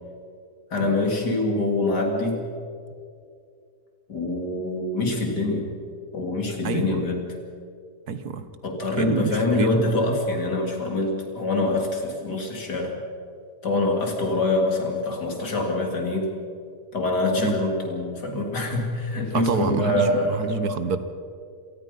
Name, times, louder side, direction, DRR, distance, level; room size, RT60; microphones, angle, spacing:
voice 1, 0.7-2.4 4.1-5.7 6.1-7.3 8.6-12.9 13.6-16.3 16.9-20.6, left 2 dB, 85° left, 1 dB, 3.7 m, -25 dB
voice 2, 6.6-7.0 8.1-8.4 9.0-9.8 17.4-17.6 19.3-21.0, right 6 dB, 70° right, 10 dB, 1.7 m, -27 dB
26.5 x 19.0 x 5.5 m, 2.4 s
omnidirectional pair, 1.7 m